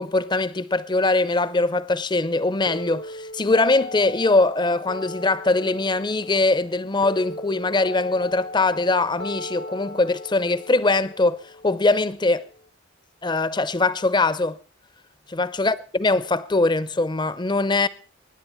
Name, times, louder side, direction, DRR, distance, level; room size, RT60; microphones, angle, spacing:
voice 1, 0.0-12.5 13.2-14.6 15.3-17.9, left 2 dB, 25° left, 0.7 m, -22 dB
sound 1, 2.7-12.7, left 1 dB, 55° left, 0.7 m, -38 dB
24.5 x 10.5 x 4.4 m
head